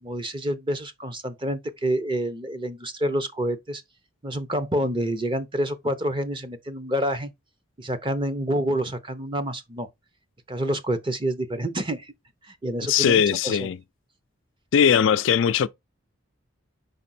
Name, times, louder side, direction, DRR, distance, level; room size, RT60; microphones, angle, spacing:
voice 1, 0.0-3.8 4.2-7.3 7.8-9.9 10.5-12.1 12.6-13.6, right 1 dB, 25° right, 0.7 m, -28 dB
voice 2, 12.8-13.8 14.7-15.7, left 8 dB, 65° left, 0.3 m, -20 dB
5.1 x 4.6 x 4.2 m
head